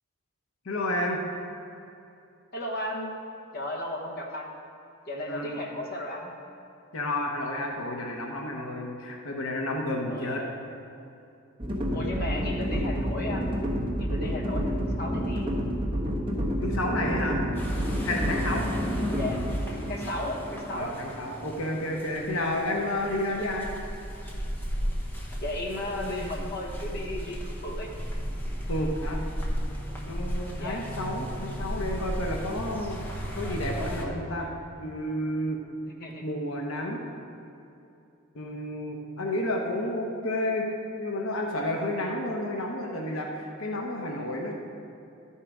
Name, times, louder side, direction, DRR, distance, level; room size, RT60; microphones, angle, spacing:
voice 1, 0.6-1.2 5.3-5.6 6.9-10.4 16.6-17.4 18.0-18.6 20.7-23.7 28.7-29.2 30.1-33.0 33.3-34.5 34.8-35.6 36.2-37.0 38.3-40.7 41.0-44.5, left 1 dB, 80° left, 1 dB, 0.9 m, -31 dB
voice 2, 2.5-3.1 3.5-4.5 5.1-6.3 10.0-10.5 11.9-13.5 14.0-15.5 19.1-19.4 19.9-20.9 25.4-27.9 30.6-30.8 36.0-36.3, left 1 dB, 50° left, 0 dB, 1.2 m, -34 dB
sound 1, 11.6-21.7, equal, 25° right, 1.1 m, -29 dB
sound 2, 17.5-34.0, equal, 10° left, 1.0 m, -35 dB
13.0 x 5.6 x 4.9 m, 2.7 s
head